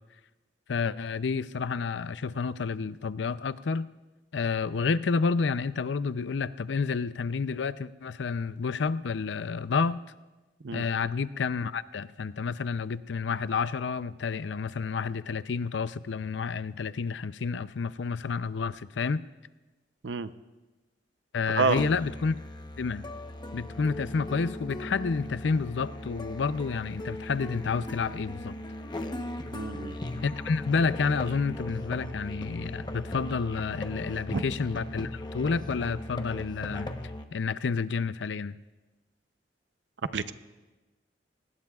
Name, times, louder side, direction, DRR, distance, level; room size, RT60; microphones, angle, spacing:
voice 1, 0.7-3.9 4.3-10.0 10.7-19.2 21.3-22.4 22.8-23.0 23.5-28.5 30.2-36.9 37.3-38.6, left 5 dB, 80° left, 15 dB, 0.5 m, -30 dB
Musical instrument, 21.8-37.2, left 1 dB, 25° left, 0.9 m, -38 dB
voice 2, 29.5-29.9 34.3-34.4 40.1-40.3, right 4 dB, 80° right, 12 dB, 0.7 m, -28 dB
27.0 x 19.0 x 2.4 m, 1.2 s
head